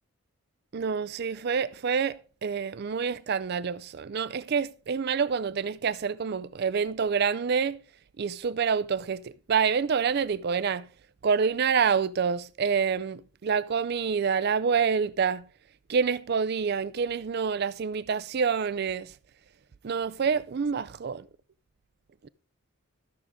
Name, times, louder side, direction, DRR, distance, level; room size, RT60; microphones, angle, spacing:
voice 1, 0.7-7.8 8.2-10.9 11.2-15.5 15.9-19.1 19.8-21.3 22.2-22.3, right 6 dB, 50° right, 0.4 m, -27 dB
13.0 x 6.4 x 3.6 m
head